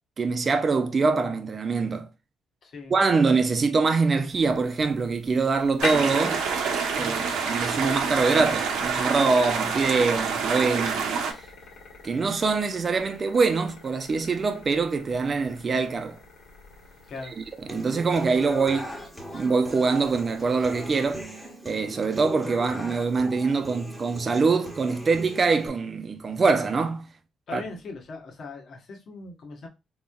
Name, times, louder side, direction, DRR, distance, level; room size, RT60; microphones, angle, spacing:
voice 1, 0.2-2.1 2.9-6.4 7.0-11.0 12.0-16.2 17.7-18.9 19.3-21.2 21.6-27.1 27.5-27.6, right 4 dB, 40° right, 0.7 m, -24 dB
voice 2, 2.6-2.9 7.0-7.3 17.1-17.3 27.5-29.7, left 3 dB, 55° left, 1.2 m, -40 dB
sound 1, 4.3-21.2, left 3 dB, 85° left, 1.6 m, -43 dB
sound 2, 5.8-11.3, right 5 dB, 85° right, 0.9 m, -27 dB
Human voice / Acoustic guitar, 17.7-25.7, equal, 5° left, 1.3 m, -40 dB
4.0 x 3.1 x 2.3 m
cardioid pair, 90°, 0 cm